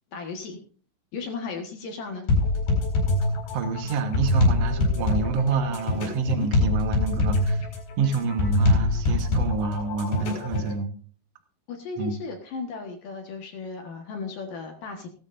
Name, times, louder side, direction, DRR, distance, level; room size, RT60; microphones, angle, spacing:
voice 1, 0.1-0.6 1.1-2.3 6.4-6.5 11.7-15.1, left 4 dB, 60° left, 3 dB, 2.9 m, -35 dB
sound 1, 2.3-10.7, left 2 dB, 85° left, 6.6 m, -24 dB
voice 2, 3.5-7.6 8.0-10.9 12.0-12.2, right 4 dB, 70° right, 6 dB, 1.5 m, -27 dB
17.0 x 13.0 x 2.6 m, 0.43 s
omnidirectional pair, 4.9 m